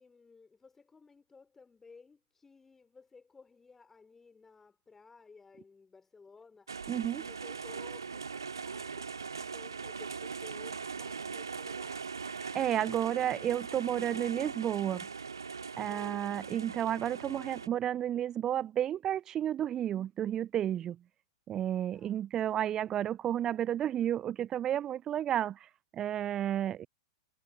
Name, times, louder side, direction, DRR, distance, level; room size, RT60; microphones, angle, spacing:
voice 1, 0.0-6.9 7.2-12.1 15.9-16.6 21.9-22.2, left 4 dB, 10° left, 4.2 m, -56 dB
sound 1, 6.7-17.7, right 5 dB, 75° right, 2.6 m, -41 dB
voice 2, 6.9-7.3 12.5-15.1 15.8-21.0 21.5-25.6 25.9-26.9, right 11 dB, 25° right, 0.5 m, -32 dB
figure-of-eight pair, 100°, 2 cm